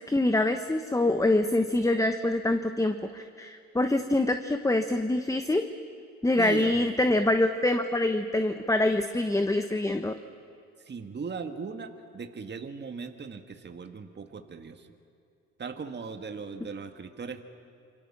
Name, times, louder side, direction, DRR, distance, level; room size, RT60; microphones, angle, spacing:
voice 1, 0.1-5.7 6.2-10.1, left 2 dB, 10° left, 8 dB, 1.1 m, -25 dB
voice 2, 6.4-6.8 10.9-14.9 15.6-17.4, right 5 dB, 35° right, 7 dB, 1.7 m, -38 dB
27.0 x 23.5 x 7.4 m, 2.6 s
cardioid pair, 90°, 30 cm